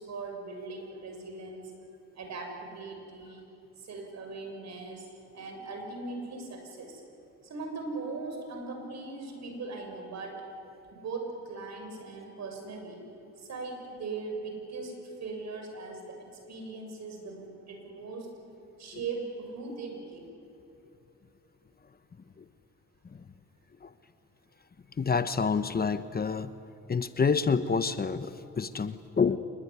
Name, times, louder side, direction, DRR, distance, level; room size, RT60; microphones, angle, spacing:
voice 1, 0.0-1.7 2.1-3.4 3.8-5.1 5.3-7.0 7.4-10.4 10.9-13.0 13.4-14.9 15.2-16.2 16.5-18.3 18.8-20.3, right 3 dB, 60° right, 4 dB, 6.6 m, -39 dB
voice 2, 25.0-26.5 26.9-29.4, left 5 dB, 30° left, 12 dB, 1.0 m, -28 dB
26.0 x 21.0 x 9.9 m, 2.9 s
cardioid pair, 90°, 30 cm